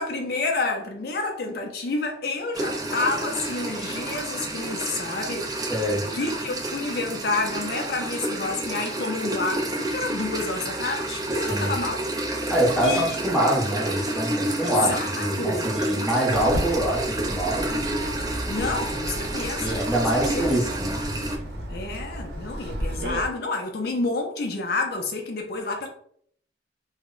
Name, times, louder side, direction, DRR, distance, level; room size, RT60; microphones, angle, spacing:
voice 1, 0.0-5.5 6.1-12.0 12.3-12.4 12.8-13.2 14.6-15.8 18.5-20.5 21.7-25.9, left 3 dB, 55° left, 0.4 m, -29 dB
sound 1, 2.5-21.4, right 2 dB, 20° right, 0.3 m, -30 dB
voice 2, 5.7-6.0 11.5-11.7 12.5-17.8 18.6-18.7 19.6-21.0, right 1 dB, ahead, 0.7 m, -25 dB
Walk footsteps, 16.3-23.2, equal, 60° right, 0.8 m, -33 dB
2.0 x 2.0 x 3.7 m
head